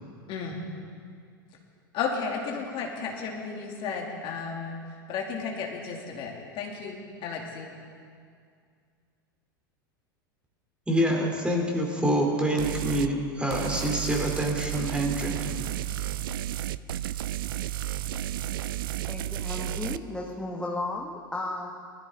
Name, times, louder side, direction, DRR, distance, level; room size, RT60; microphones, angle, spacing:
voice 1, 0.3-0.6 1.9-4.8 5.1-7.7, left 5 dB, 45° left, 0 dB, 2.4 m, -33 dB
voice 2, 10.9-15.7, right 1 dB, 10° right, 0 dB, 3.2 m, -26 dB
sound 1, 12.6-13.1 13.5-20.0, right 12 dB, 75° right, 0.4 m, -32 dB
voice 3, 19.1-21.7, left 2 dB, 5° left, -1 dB, 1.3 m, -34 dB
19.5 x 13.5 x 3.7 m, 2.2 s
hypercardioid pair, 90°, 12 cm